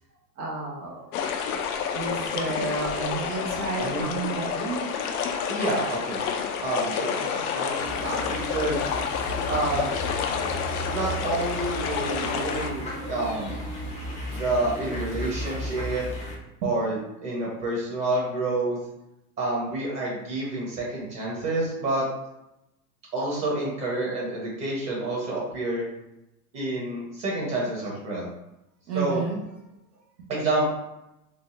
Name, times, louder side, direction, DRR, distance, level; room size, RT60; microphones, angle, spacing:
voice 1, 0.4-1.1 1.9-4.9 16.6-16.7 28.9-29.4, right 4 dB, 70° right, -3 dB, 1.0 m, -31 dB
sound 1, 1.1-12.7, left 7 dB, 70° left, 0.6 m, -29 dB
voice 2, 5.5-6.2 6.6-8.9 9.5-9.9 10.9-13.5 14.3-16.0 16.6-17.0 17.2-18.8 19.4-22.1 23.1-25.8 26.5-28.3 28.9-29.2 30.3-30.7, right 2 dB, 35° right, -4 dB, 1.2 m, -28 dB
sound 2, 7.8-16.4, equal, 15° left, 0.6 m, -34 dB
3.9 x 2.0 x 2.6 m, 0.90 s
hypercardioid pair, 115°, 47 cm